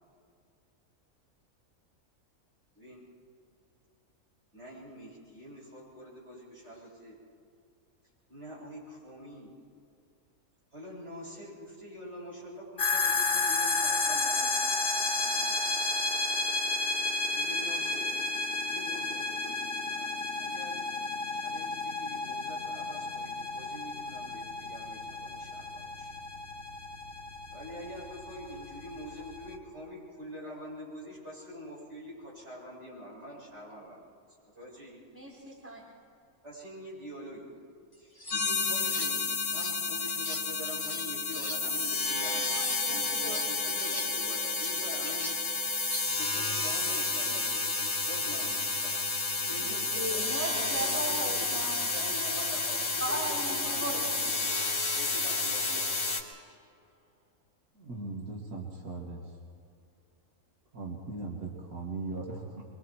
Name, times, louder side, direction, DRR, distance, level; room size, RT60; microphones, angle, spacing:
voice 1, 2.7-3.1 4.5-7.2 8.3-9.5 10.7-15.5 17.3-18.2 18.5-20.1 20.4-20.8 21.3-26.1 27.5-34.0 34.5-35.0 36.4-37.6 37.9-42.5 42.8-45.3 46.2-54.6 54.9-56.0 56.5-56.6, equal, 50° right, -6 dB, 7.8 m, -45 dB
sound 1, 12.8-29.6, left 3 dB, 40° left, 1.4 m, -32 dB
voice 2, 35.1-35.8 42.5-43.4 49.6-51.8 53.0-54.0, right 1 dB, 10° right, -4 dB, 4.1 m, -37 dB
sound 2, 37.9-38.4 38.8-39.8 40.1-42.8 43.1-46.3, left 1 dB, 15° left, 1.4 m, -43 dB
sound 3, 38.3-56.2, left 3 dB, 60° left, 2.7 m, -31 dB
voice 3, 57.7-59.3 60.7-62.6, right 3 dB, 85° right, -2 dB, 2.8 m, -39 dB
24.5 x 24.0 x 4.6 m, 2.4 s
omnidirectional pair, 1.5 m